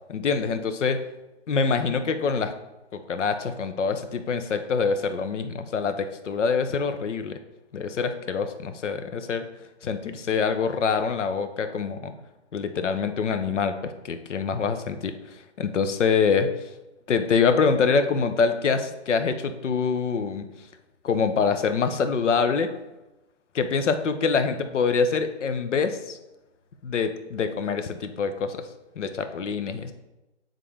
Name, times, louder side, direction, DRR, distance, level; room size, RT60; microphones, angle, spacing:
voice 1, 0.1-1.0 1.5-2.5 2.9-7.4 7.7-9.5 9.8-12.1 12.5-15.1 15.6-16.5 17.1-20.5 21.0-22.7 23.5-26.2 26.8-28.7 29.0-29.9, left 5 dB, 75° left, 9 dB, 0.8 m, -25 dB
9.2 x 3.8 x 3.4 m, 1.0 s
hypercardioid pair, 155°, 36 cm